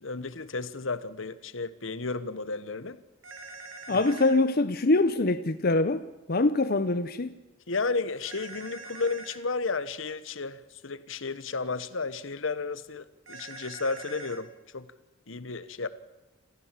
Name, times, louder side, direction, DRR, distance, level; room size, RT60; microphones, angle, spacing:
voice 1, 0.0-3.0 3.9-4.0 7.7-14.9 15.3-15.9, left 4 dB, 75° left, 1.2 m, -33 dB
sound 1, 3.2-4.4 8.2-9.4 13.3-14.4, right 3 dB, 80° right, 3.2 m, -44 dB
voice 2, 3.9-6.0 6.3-7.3, left 2 dB, 50° left, 0.9 m, -24 dB
27.5 x 14.5 x 7.6 m
head